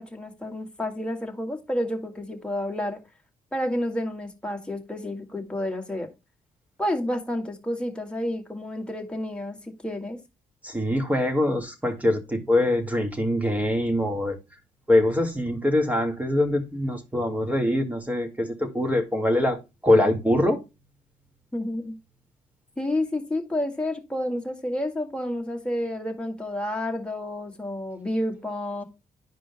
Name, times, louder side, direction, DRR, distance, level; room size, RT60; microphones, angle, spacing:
voice 1, 0.0-3.0 3.5-6.1 6.8-10.2 21.5-22.0 22.8-28.8, left 1 dB, 5° left, 1.9 m, -30 dB
voice 2, 10.6-14.4 14.9-20.6, left 1 dB, 10° right, 1.9 m, -23 dB
11.0 x 4.9 x 2.2 m
cardioid pair, 90°, 15 cm